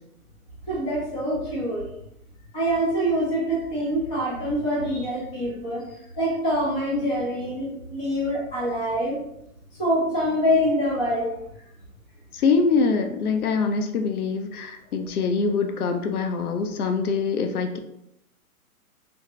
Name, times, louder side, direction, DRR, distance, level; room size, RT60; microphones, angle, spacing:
voice 1, 0.7-1.8 2.5-5.8 6.2-9.2 9.8-11.3, equal, 10° left, -7 dB, 0.9 m, -25 dB
voice 2, 12.3-17.8, left 4 dB, 80° left, 6 dB, 0.6 m, -24 dB
3.5 x 2.5 x 3.1 m, 0.80 s
hypercardioid pair, 160°, 44 cm